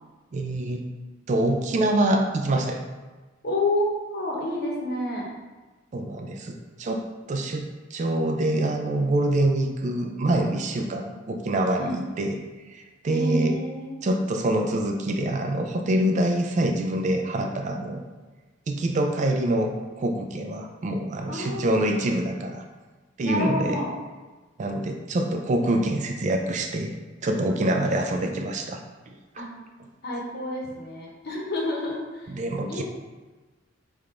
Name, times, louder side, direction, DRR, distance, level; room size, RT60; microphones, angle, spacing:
voice 1, 0.3-0.9 1.3-2.8 5.9-12.4 12.7-13.5 14.0-18.0 18.7-19.7 20.0-22.6 23.2-23.8 24.6-26.9 27.2-28.8 29.1-29.5 32.3-32.8, right 1 dB, 40° right, 4 dB, 0.3 m, -25 dB
voice 2, 3.4-5.3 11.8-12.0 13.1-14.0 21.3-21.8 23.2-23.9 29.4-29.5 30.0-32.3 32.7-32.8, left 1 dB, 55° left, -2 dB, 0.9 m, -29 dB
3.4 x 2.5 x 4.3 m, 1.3 s
head